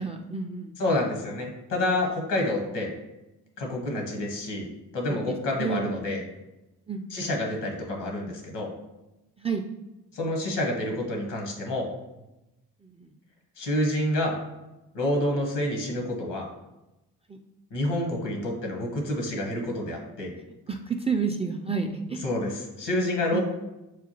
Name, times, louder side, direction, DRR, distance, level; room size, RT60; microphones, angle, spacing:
voice 1, 0.0-0.8 5.1-5.9 6.9-7.3 9.4-9.7 12.8-13.1 17.3-17.4 20.7-22.3 23.3-23.4, right 5 dB, 15° right, 3 dB, 0.3 m, -31 dB
voice 2, 0.8-2.9 3.6-4.7 4.9-6.2 7.1-8.7 10.1-11.9 13.6-14.3 14.9-16.5 17.7-20.3 22.2-23.4, left 1 dB, 70° left, 1 dB, 1.1 m, -28 dB
6.4 x 2.3 x 2.8 m, 0.99 s
hypercardioid pair, 40°, 43 cm